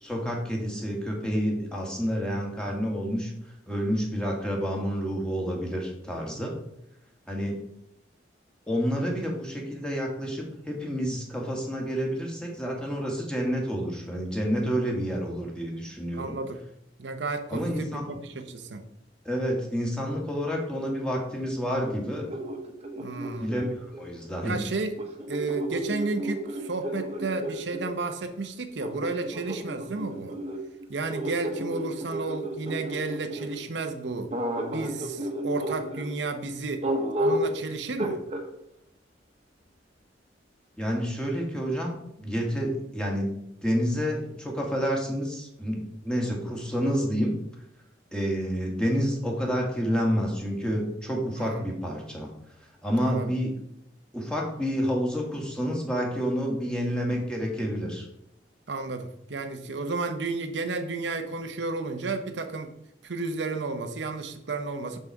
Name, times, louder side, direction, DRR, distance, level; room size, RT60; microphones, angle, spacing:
voice 1, 0.0-3.3 3.7-6.5 7.3-7.6 8.7-16.3 17.5-18.0 19.2-22.3 23.4-24.6 40.8-47.3 48.1-52.3 52.8-53.5 54.1-58.1, equal, 5° left, -1 dB, 1.6 m, -29 dB
voice 2, 16.1-16.6 17.0-18.8 23.0-23.5 24.4-24.9 25.3-30.4 30.9-34.3 34.6-36.9 37.2-38.2 51.3-51.6 53.0-53.3 58.7-62.7 63.0-65.0, right 3 dB, 75° right, 6 dB, 0.7 m, -32 dB
sound 1, 21.7-24.1 25.0-27.9 28.8-33.6 34.3-36.1 36.8-37.6 38.0-38.5, right 1 dB, 35° right, 1.0 m, -32 dB
6.5 x 5.6 x 4.6 m, 0.77 s
head